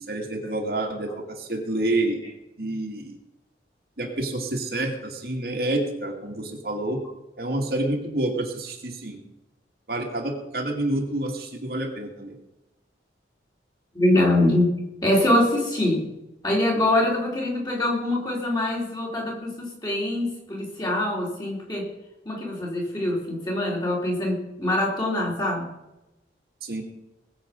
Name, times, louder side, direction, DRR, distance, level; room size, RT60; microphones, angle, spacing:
voice 1, 0.0-2.2 2.6-3.2 4.0-7.0 7.4-9.2 9.9-12.4 26.6-26.8, right 1 dB, 55° right, 1 dB, 2.4 m, -28 dB
voice 2, 13.9-14.8 15.0-16.0 16.4-21.9 22.3-25.7, left 1 dB, 20° left, -3 dB, 3.8 m, -24 dB
20.5 x 8.0 x 5.3 m, 0.95 s
head